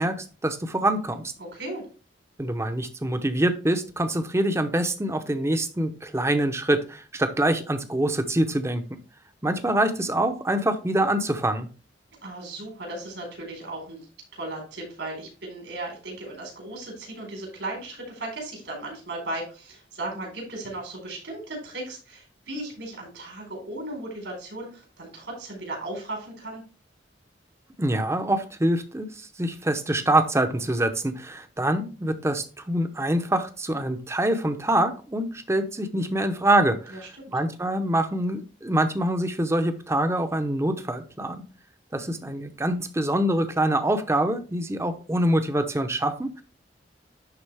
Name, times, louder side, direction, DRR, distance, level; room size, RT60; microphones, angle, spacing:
voice 1, 0.0-1.2 2.4-9.0 9.4-11.7 27.8-29.1 29.4-37.0 37.3-41.4 41.9-46.4, right 1 dB, 15° right, 8 dB, 0.7 m, -25 dB
voice 2, 1.4-1.8 12.2-14.1 14.3-26.6 36.9-37.3, right 2 dB, 85° right, 0 dB, 4.3 m, -36 dB
11.0 x 4.0 x 3.4 m, 0.35 s
head